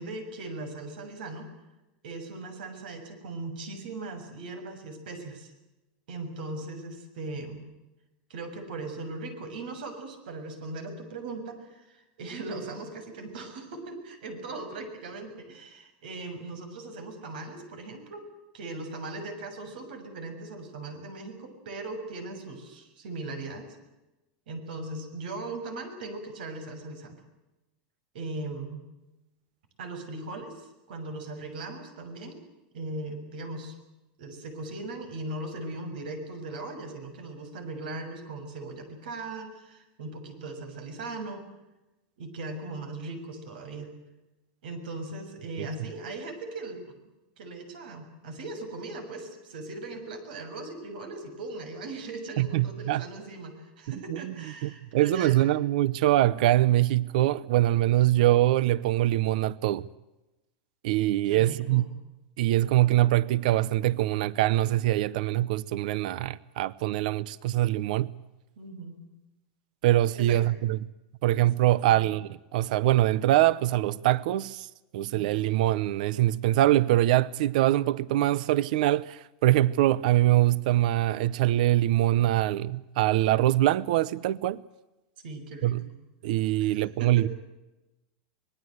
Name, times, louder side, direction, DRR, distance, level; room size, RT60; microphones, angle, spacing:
voice 1, 0.0-1.5 2.0-5.5 6.1-7.6 8.3-18.2 18.5-23.8 24.5-27.2 28.1-28.8 29.8-32.4 32.7-33.8 34.2-41.4 42.2-43.9 44.6-47.0 47.4-55.4 61.2-61.9 68.6-69.0 70.2-70.4 75.1-75.4 85.2-85.9 86.6-87.3, right 2 dB, 85° right, 7.0 m, -39 dB
voice 2, 52.4-53.0 54.1-54.2 54.6-59.9 60.8-61.9 62.4-68.1 69.8-70.8 71.2-74.7 74.9-84.6 85.6-85.8 86.2-87.3, right 14 dB, 65° right, 0.8 m, -23 dB
25.5 x 20.5 x 7.9 m
supercardioid pair, 160°, 5 cm